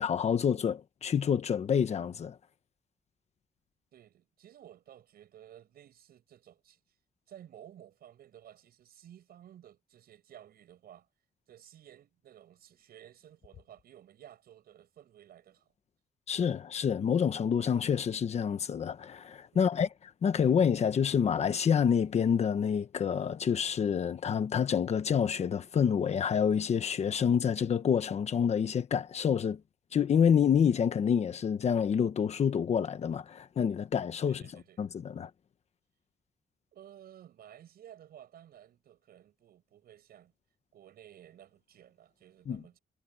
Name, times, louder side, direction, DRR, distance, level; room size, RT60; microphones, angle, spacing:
voice 1, 0.0-2.4 16.3-29.6 29.9-34.4 34.8-35.3 42.5-42.6, left 7 dB, 45° left, 1.2 m, -28 dB
voice 2, 3.9-6.8 7.3-11.1 11.5-15.7 19.5-19.7 34.2-34.8 36.7-40.3 40.7-42.8, right 11 dB, 75° right, 6.2 m, -54 dB
wide cardioid pair, 180°, 16 cm